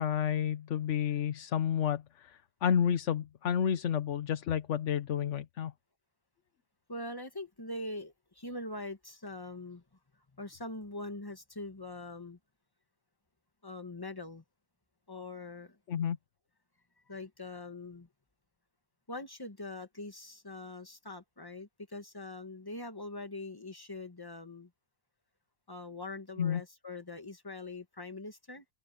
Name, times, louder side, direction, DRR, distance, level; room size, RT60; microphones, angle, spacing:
voice 1, 0.0-5.7 15.9-16.2 26.4-26.6, left 8 dB, 80° left, 1.2 m, -30 dB
voice 2, 6.9-9.8 10.3-12.4 13.6-14.4 15.1-15.8 17.1-18.1 19.1-24.7 25.7-28.7, left 2 dB, 20° left, 1.7 m, -43 dB
omnidirectional pair, 1.2 m